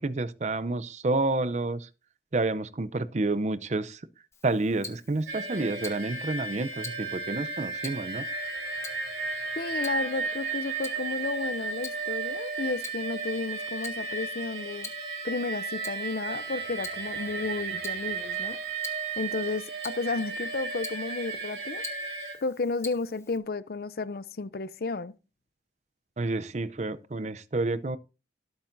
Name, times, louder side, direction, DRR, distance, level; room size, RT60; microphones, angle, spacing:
voice 1, 0.0-1.9 2.3-4.0 4.4-8.3 26.2-28.0, right 2 dB, 40° right, 0.6 m, -29 dB
Tick-tock, 4.3-23.4, left 4 dB, 15° left, 1.5 m, -48 dB
sound 1, 5.3-22.4, right 4 dB, 65° right, 3.9 m, -34 dB
voice 2, 9.6-14.9 15.2-18.6 19.2-21.8 22.4-25.1, left 3 dB, 55° left, 0.5 m, -32 dB
17.5 x 8.8 x 2.6 m
head